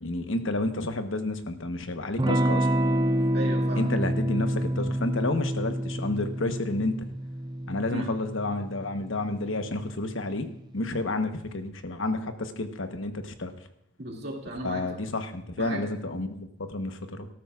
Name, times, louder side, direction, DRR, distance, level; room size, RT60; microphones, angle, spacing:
voice 1, 0.0-2.7 3.8-7.0 7.7-10.5 10.7-13.5 14.6-17.3, left 2 dB, 85° left, 7 dB, 1.1 m, -30 dB
Electric guitar / Strum, 2.2-10.5, right 1 dB, 20° right, 0.5 m, -28 dB
voice 2, 3.3-4.0 7.9-8.1 11.1-11.2 14.0-14.8 15.6-15.8, right 1 dB, 55° right, -1 dB, 2.4 m, -35 dB
19.0 x 13.5 x 2.4 m, 0.77 s
head